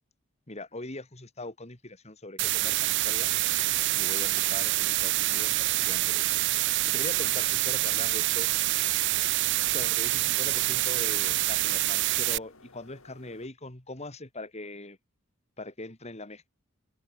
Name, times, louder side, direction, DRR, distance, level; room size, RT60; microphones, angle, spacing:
voice 1, 0.5-3.3 3.9-8.5 9.7-15.0 15.6-16.5, left 2 dB, 30° left, 2.4 m, -41 dB
sound 1, 2.4-12.4, right 18 dB, 55° right, 0.4 m, -26 dB
sound 2, 8.4-13.5, left 2 dB, 70° left, 5.7 m, -56 dB
head